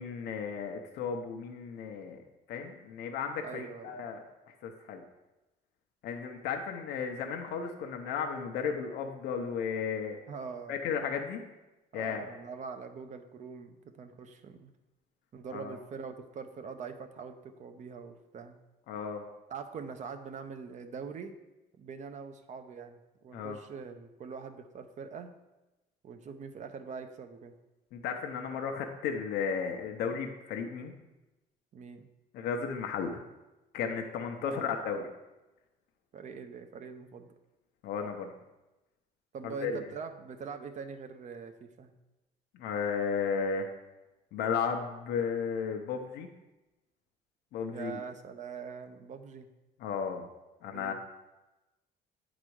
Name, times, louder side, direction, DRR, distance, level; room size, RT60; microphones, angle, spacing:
voice 1, 0.0-2.2 2.5-4.2 4.6-5.0 6.0-10.2 10.7-11.4 11.9-12.3 15.5-15.8 18.9-19.3 23.3-23.6 27.9-30.9 32.3-33.2 33.7-35.1 37.8-38.3 39.4-39.8 42.6-43.7 44.3-46.3 47.5-48.0 49.8-50.3 50.6-50.9, left 6 dB, 75° left, 3 dB, 0.7 m, -34 dB
voice 2, 3.4-3.9 10.3-10.7 11.9-14.7 15.3-18.6 19.5-21.3 21.8-25.3 26.0-27.5 31.7-32.1 34.4-34.8 36.1-37.3 39.3-41.9 47.7-49.5 50.7-50.9, right 5 dB, 45° right, 8 dB, 0.7 m, -43 dB
8.7 x 4.0 x 4.7 m, 1.0 s
cardioid pair, 110°, 17 cm